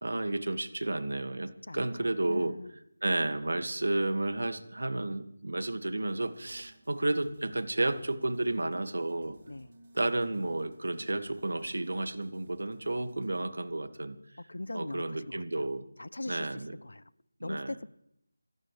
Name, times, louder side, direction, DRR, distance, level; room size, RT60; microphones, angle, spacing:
voice 1, 0.0-2.6 3.0-9.4 9.9-14.2 14.7-15.8 16.3-16.7 17.4-17.7, right 2 dB, 80° right, 8 dB, 2.0 m, -32 dB
voice 2, 1.7-2.7 9.5-9.7 14.5-15.4 16.0-17.0 17.4-17.9, left 2 dB, 90° left, 21 dB, 0.6 m, -40 dB
sound 1, 6.1-13.4, right 1 dB, 40° right, 4.8 m, -58 dB
28.0 x 15.5 x 3.4 m, 0.80 s
figure-of-eight pair, 175°, 0 cm